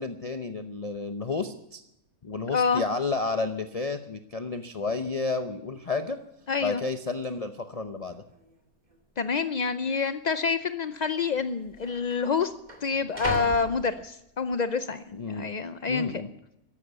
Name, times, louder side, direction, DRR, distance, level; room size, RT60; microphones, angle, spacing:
voice 1, 0.0-1.8 2.2-6.2 6.6-8.2 15.1-15.5 15.9-16.3, left 3 dB, 35° left, 8 dB, 0.7 m, -31 dB
voice 2, 2.5-2.8 6.5-6.8 9.2-12.5 12.8-16.2, left 5 dB, 70° left, 11 dB, 0.4 m, -27 dB
sound 1, 5.8-5.9 6.1-6.5 7.2-7.3 8.1-8.6 8.9-9.0 9.8-10.0 11.0-11.1 11.3-14.6 15.0-15.5, equal, 30° right, 2.4 m, -40 dB
14.0 x 12.0 x 8.2 m, 0.81 s
omnidirectional pair, 1.6 m